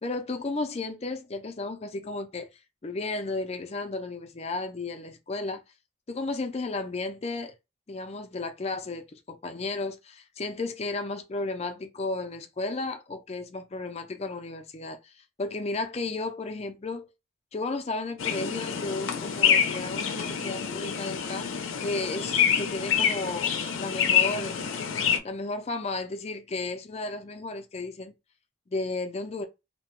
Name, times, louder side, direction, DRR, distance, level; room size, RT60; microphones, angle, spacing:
voice 1, 0.0-2.5 2.8-5.6 6.1-7.5 7.9-17.1 17.5-21.5 21.8-24.6 25.2-28.1 28.7-29.5, left 3 dB, 30° left, 0.4 m, -33 dB
sound 1, 18.2-25.2, left 8 dB, 90° left, 0.5 m, -27 dB
2.8 x 2.2 x 2.9 m
head